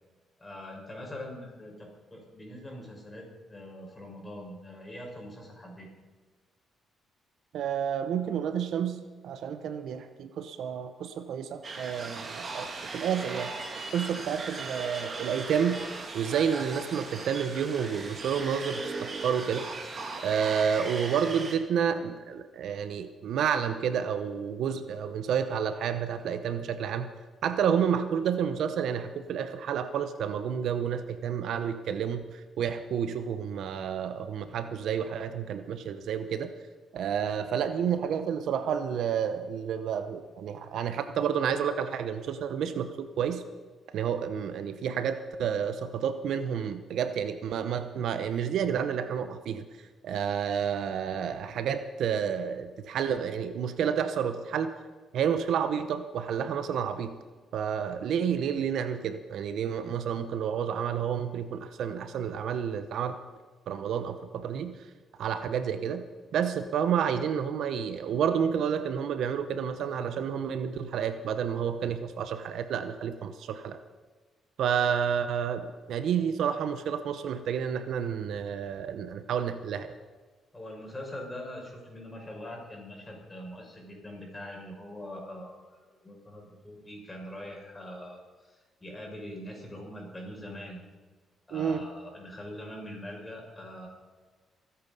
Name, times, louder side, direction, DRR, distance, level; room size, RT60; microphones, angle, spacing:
voice 1, 0.4-5.9 80.5-90.8 91.5-93.9, left 1 dB, 20° left, -1 dB, 6.3 m, -43 dB
voice 2, 7.5-12.7 12.9-13.5 13.9-15.8 16.1-19.7 20.2-27.1 27.4-36.5 36.9-43.4 43.9-49.6 50.0-54.7 55.1-57.2 57.5-63.2 63.7-64.8 65.2-66.1 66.3-73.8 74.6-79.9 91.5-91.8, right 8 dB, 75° right, 10 dB, 0.9 m, -30 dB
sound 1, 11.6-21.6, right 3 dB, 40° right, 2.3 m, -38 dB
24.5 x 8.8 x 5.5 m, 1.4 s
cardioid pair, 90°, 0 cm